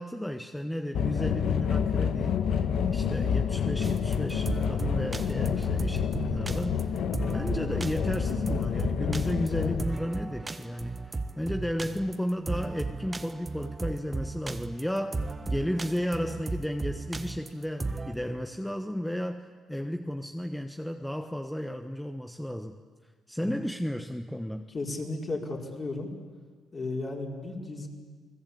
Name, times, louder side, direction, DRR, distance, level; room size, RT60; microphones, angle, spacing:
voice 1, 0.0-15.2 15.5-22.8 23.3-24.7, equal, 5° left, 6 dB, 1.1 m, -33 dB
sound 1, 0.9-9.8, left 7 dB, 75° left, 1.5 m, -28 dB
sound 2, 3.8-18.1, right 3 dB, 25° right, 1.5 m, -35 dB
voice 2, 24.7-26.1 26.7-27.9, left 2 dB, 35° left, 0 dB, 5.2 m, -34 dB
29.5 x 20.0 x 8.7 m, 1.5 s
cardioid pair, 90°, 0 cm